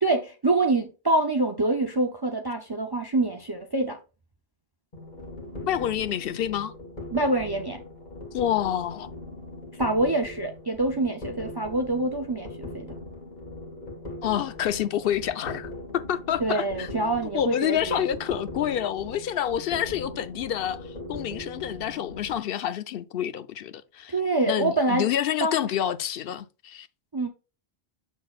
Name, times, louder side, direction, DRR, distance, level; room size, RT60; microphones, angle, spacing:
voice 1, 0.0-4.0 7.1-7.8 9.8-12.9 16.4-18.1 24.1-25.1 25.4-25.7 27.1-27.3, right 2 dB, 25° right, 0.6 m, -25 dB
sound 1, 4.9-22.4, left 2 dB, 40° left, 1.7 m, -40 dB
voice 2, 5.6-6.7 8.3-9.1 14.2-16.9 17.3-24.1 24.5-26.9, left 10 dB, 65° left, 0.7 m, -28 dB
7.1 x 6.1 x 2.4 m
omnidirectional pair, 1.1 m